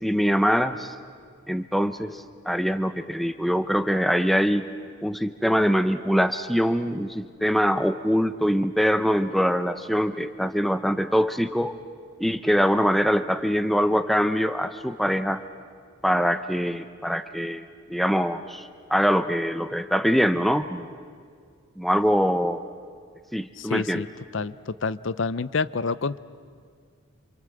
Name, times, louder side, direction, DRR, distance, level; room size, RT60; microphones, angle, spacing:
voice 1, 0.0-0.9 1.5-2.2 2.5-4.6 5.0-11.7 12.2-15.4 16.0-17.6 17.9-20.9 21.8-22.6 23.3-24.0, equal, ahead, 10 dB, 0.7 m, -23 dB
voice 2, 23.6-24.1 24.3-26.2, left 4 dB, 60° left, 17 dB, 0.6 m, -28 dB
27.5 x 26.5 x 7.8 m, 2.1 s
head